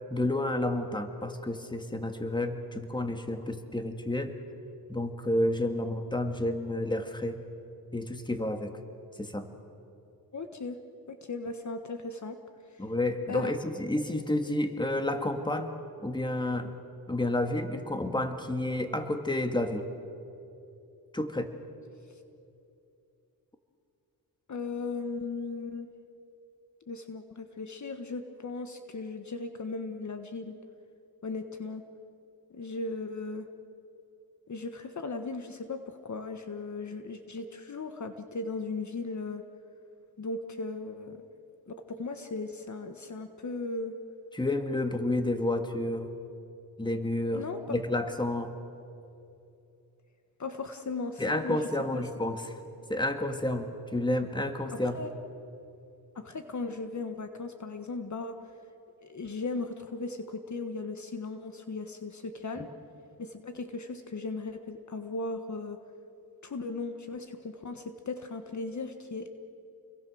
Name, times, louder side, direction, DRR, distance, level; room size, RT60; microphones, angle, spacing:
voice 1, 0.1-4.3 4.9-7.4 7.9-8.7 9.2-9.5 12.8-15.7 16.0-16.7 17.1-19.9 21.1-21.5 44.3-46.1 46.8-48.5 51.2-52.6 52.9-55.0 62.6-62.7, left 1 dB, 10° left, 6 dB, 2.0 m, -30 dB
voice 2, 10.3-10.8 11.1-12.4 13.3-13.6 24.5-25.9 26.9-30.5 31.2-31.8 32.5-33.5 34.5-39.4 40.2-41.2 41.7-44.0 47.3-47.8 50.4-51.6 51.9-52.0 54.7-55.1 56.1-58.4 59.0-62.7 63.2-65.8 66.4-69.3, left 3 dB, 50° left, 7 dB, 1.5 m, -37 dB
29.5 x 22.5 x 6.4 m, 2.7 s
cardioid pair, 80°, 37 cm